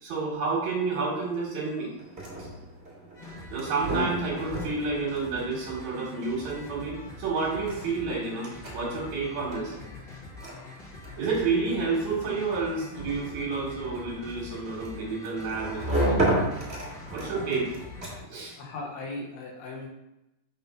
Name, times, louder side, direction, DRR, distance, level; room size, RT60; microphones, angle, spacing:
voice 1, 0.0-1.9 3.5-9.7 11.2-16.2 17.1-17.6 18.3-18.5, right 4 dB, 60° right, -6 dB, 2.4 m, -30 dB
sound 1, 1.9-18.5, right 1 dB, 25° right, 1.4 m, -34 dB
sound 2, 3.1-18.2, left 3 dB, 50° left, 1.5 m, -44 dB
voice 2, 18.0-19.9, left 3 dB, 75° left, -1 dB, 1.6 m, -39 dB
5.6 x 3.6 x 5.4 m, 0.90 s
omnidirectional pair, 4.0 m